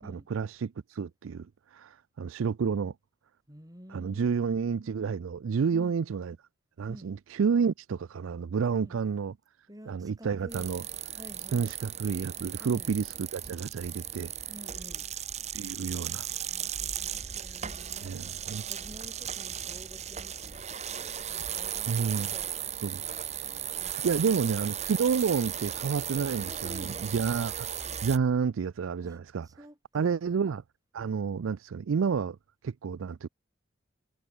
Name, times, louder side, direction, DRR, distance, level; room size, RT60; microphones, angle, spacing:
voice 1, 0.0-2.9 3.9-6.4 6.8-9.3 9.9-10.8 11.5-14.3 15.5-16.3 18.0-18.6 21.9-22.3 22.8-23.0 23.9-27.7 28.0-29.5 29.9-30.6 30.9-32.4 32.6-33.3, right 6 dB, 80° right, 0.4 m, -30 dB
voice 2, 3.5-4.9 5.7-6.0 6.9-7.1 8.7-9.0 9.7-10.7 11.2-11.7 12.6-12.9 14.5-15.1 15.9-24.4 26.5-27.1 29.0-30.2, equal, 20° right, 5.9 m, -51 dB
sound 1, 10.5-28.2, right 9 dB, 35° right, 1.3 m, -36 dB
head